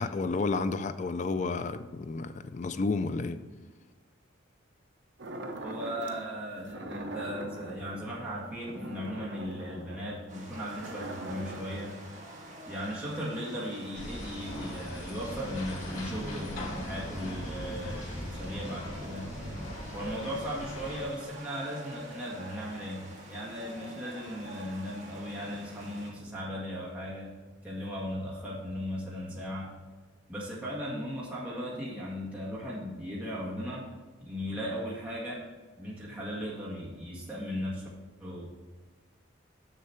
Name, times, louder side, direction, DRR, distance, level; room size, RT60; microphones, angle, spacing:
voice 1, 0.0-3.4, left 3 dB, 35° left, 11 dB, 0.3 m, -31 dB
sound 1, 5.2-6.2 6.6-11.9, right 1 dB, 60° right, 0.7 m, -42 dB
voice 2, 5.6-11.9 12.7-19.3 19.9-27.3 27.6-29.7 30.3-33.9 34.2-35.4 35.8-37.8 38.2-38.5, equal, 5° right, -7 dB, 1.8 m, -37 dB
sound 2, 10.3-26.1, right 1 dB, 35° right, 1.6 m, -48 dB
sound 3, 13.9-21.0, left 1 dB, 90° left, 2.4 m, -40 dB
6.6 x 6.4 x 4.4 m, 1.4 s
head